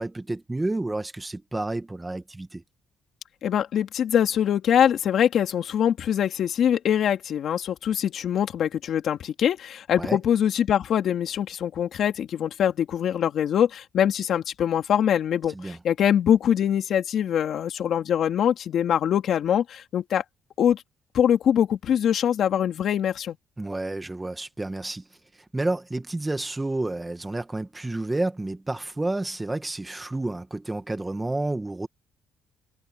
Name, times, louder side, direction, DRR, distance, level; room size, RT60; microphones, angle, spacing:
voice 1, 0.0-2.6 10.0-10.2 15.5-15.8 23.6-25.0 25.5-31.9, right 2 dB, 15° right, 1.9 m, -30 dB
voice 2, 3.4-20.2 20.6-20.8 21.1-23.4, left 9 dB, 60° left, 2.7 m, -23 dB
cardioid pair, 110°, 0 cm